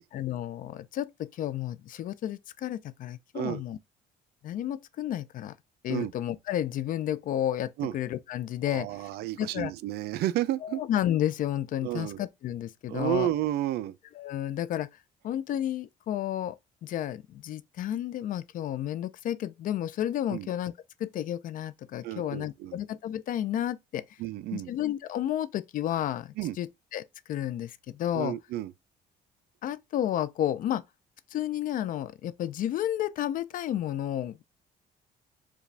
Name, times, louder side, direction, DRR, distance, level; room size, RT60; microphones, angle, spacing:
voice 1, 0.1-3.8 4.4-5.5 5.8-8.9 9.4-9.7 10.6-13.3 14.2-14.9 15.2-16.6 16.8-20.7 21.0-24.2 24.5-28.3 29.6-30.8 31.3-34.4, left 11 dB, 55° left, 0.4 m, -31 dB
voice 2, 8.7-10.8 11.8-12.2 12.9-14.0 20.3-20.5 22.0-22.8 24.2-24.7 26.4-26.6 28.1-28.7, right 14 dB, 70° right, 0.4 m, -31 dB
4.7 x 2.3 x 3.2 m
cardioid pair, 110°, 17 cm